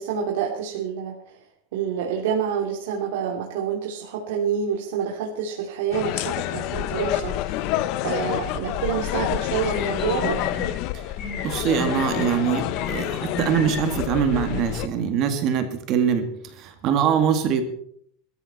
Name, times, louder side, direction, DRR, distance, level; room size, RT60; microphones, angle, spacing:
voice 1, 0.0-1.4 1.7-7.7 8.0-10.4, right 7 dB, 70° right, -1 dB, 2.9 m, -27 dB
sound 1, 5.9-14.9, left 14 dB, 40° left, 0.7 m, -28 dB
sound 2, 9.1-9.2 9.6-10.7 11.2-12.2 12.7-13.8, left 3 dB, 25° left, 3.6 m, -32 dB
voice 2, 11.4-17.6, right 8 dB, 35° right, 7 dB, 2.0 m, -23 dB
22.5 x 13.5 x 4.3 m, 0.65 s
supercardioid pair, 175°, 0 cm